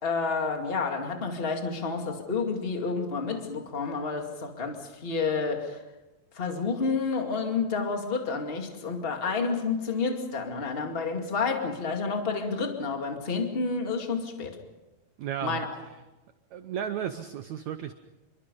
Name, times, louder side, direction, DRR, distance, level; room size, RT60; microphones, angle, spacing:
voice 1, 0.0-5.8 6.3-14.6 15.4-15.7, left 4 dB, 20° left, 3 dB, 1.7 m, -30 dB
voice 2, 15.2-15.7 16.5-17.9, right 9 dB, 85° right, 10 dB, 1.6 m, -34 dB
27.5 x 23.5 x 5.4 m, 1.1 s
omnidirectional pair, 4.5 m